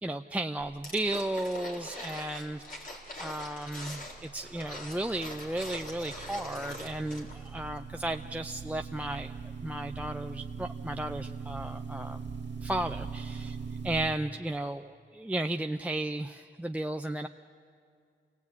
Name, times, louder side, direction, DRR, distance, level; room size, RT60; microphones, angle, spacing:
voice 1, 0.0-9.3 9.6-12.2 12.6-13.5 13.8-17.3, right 1 dB, 5° right, 8 dB, 0.6 m, -34 dB
sound 1, 0.8-7.5 7.7-7.8, left 1 dB, 50° left, 4.1 m, -43 dB
sound 2, 3.3-14.1, right 5 dB, 70° right, 1.9 m, -41 dB
27.5 x 19.5 x 8.5 m, 2.3 s
cardioid pair, 65°, 19 cm